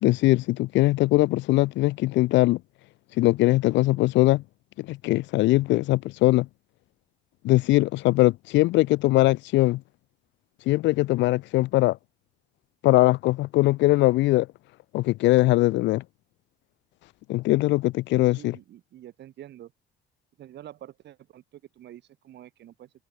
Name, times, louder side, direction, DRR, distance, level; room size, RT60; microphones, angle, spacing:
voice 1, 0.0-2.6 3.2-4.4 4.8-6.5 7.4-9.8 10.7-12.0 12.8-14.5 14.9-16.0 17.3-18.6, left 18 dB, 85° left, 0.6 m, -21 dB
voice 2, 18.2-19.7 20.4-22.9, right 12 dB, 70° right, 6.1 m, -47 dB
cardioid pair, 105°, 18 cm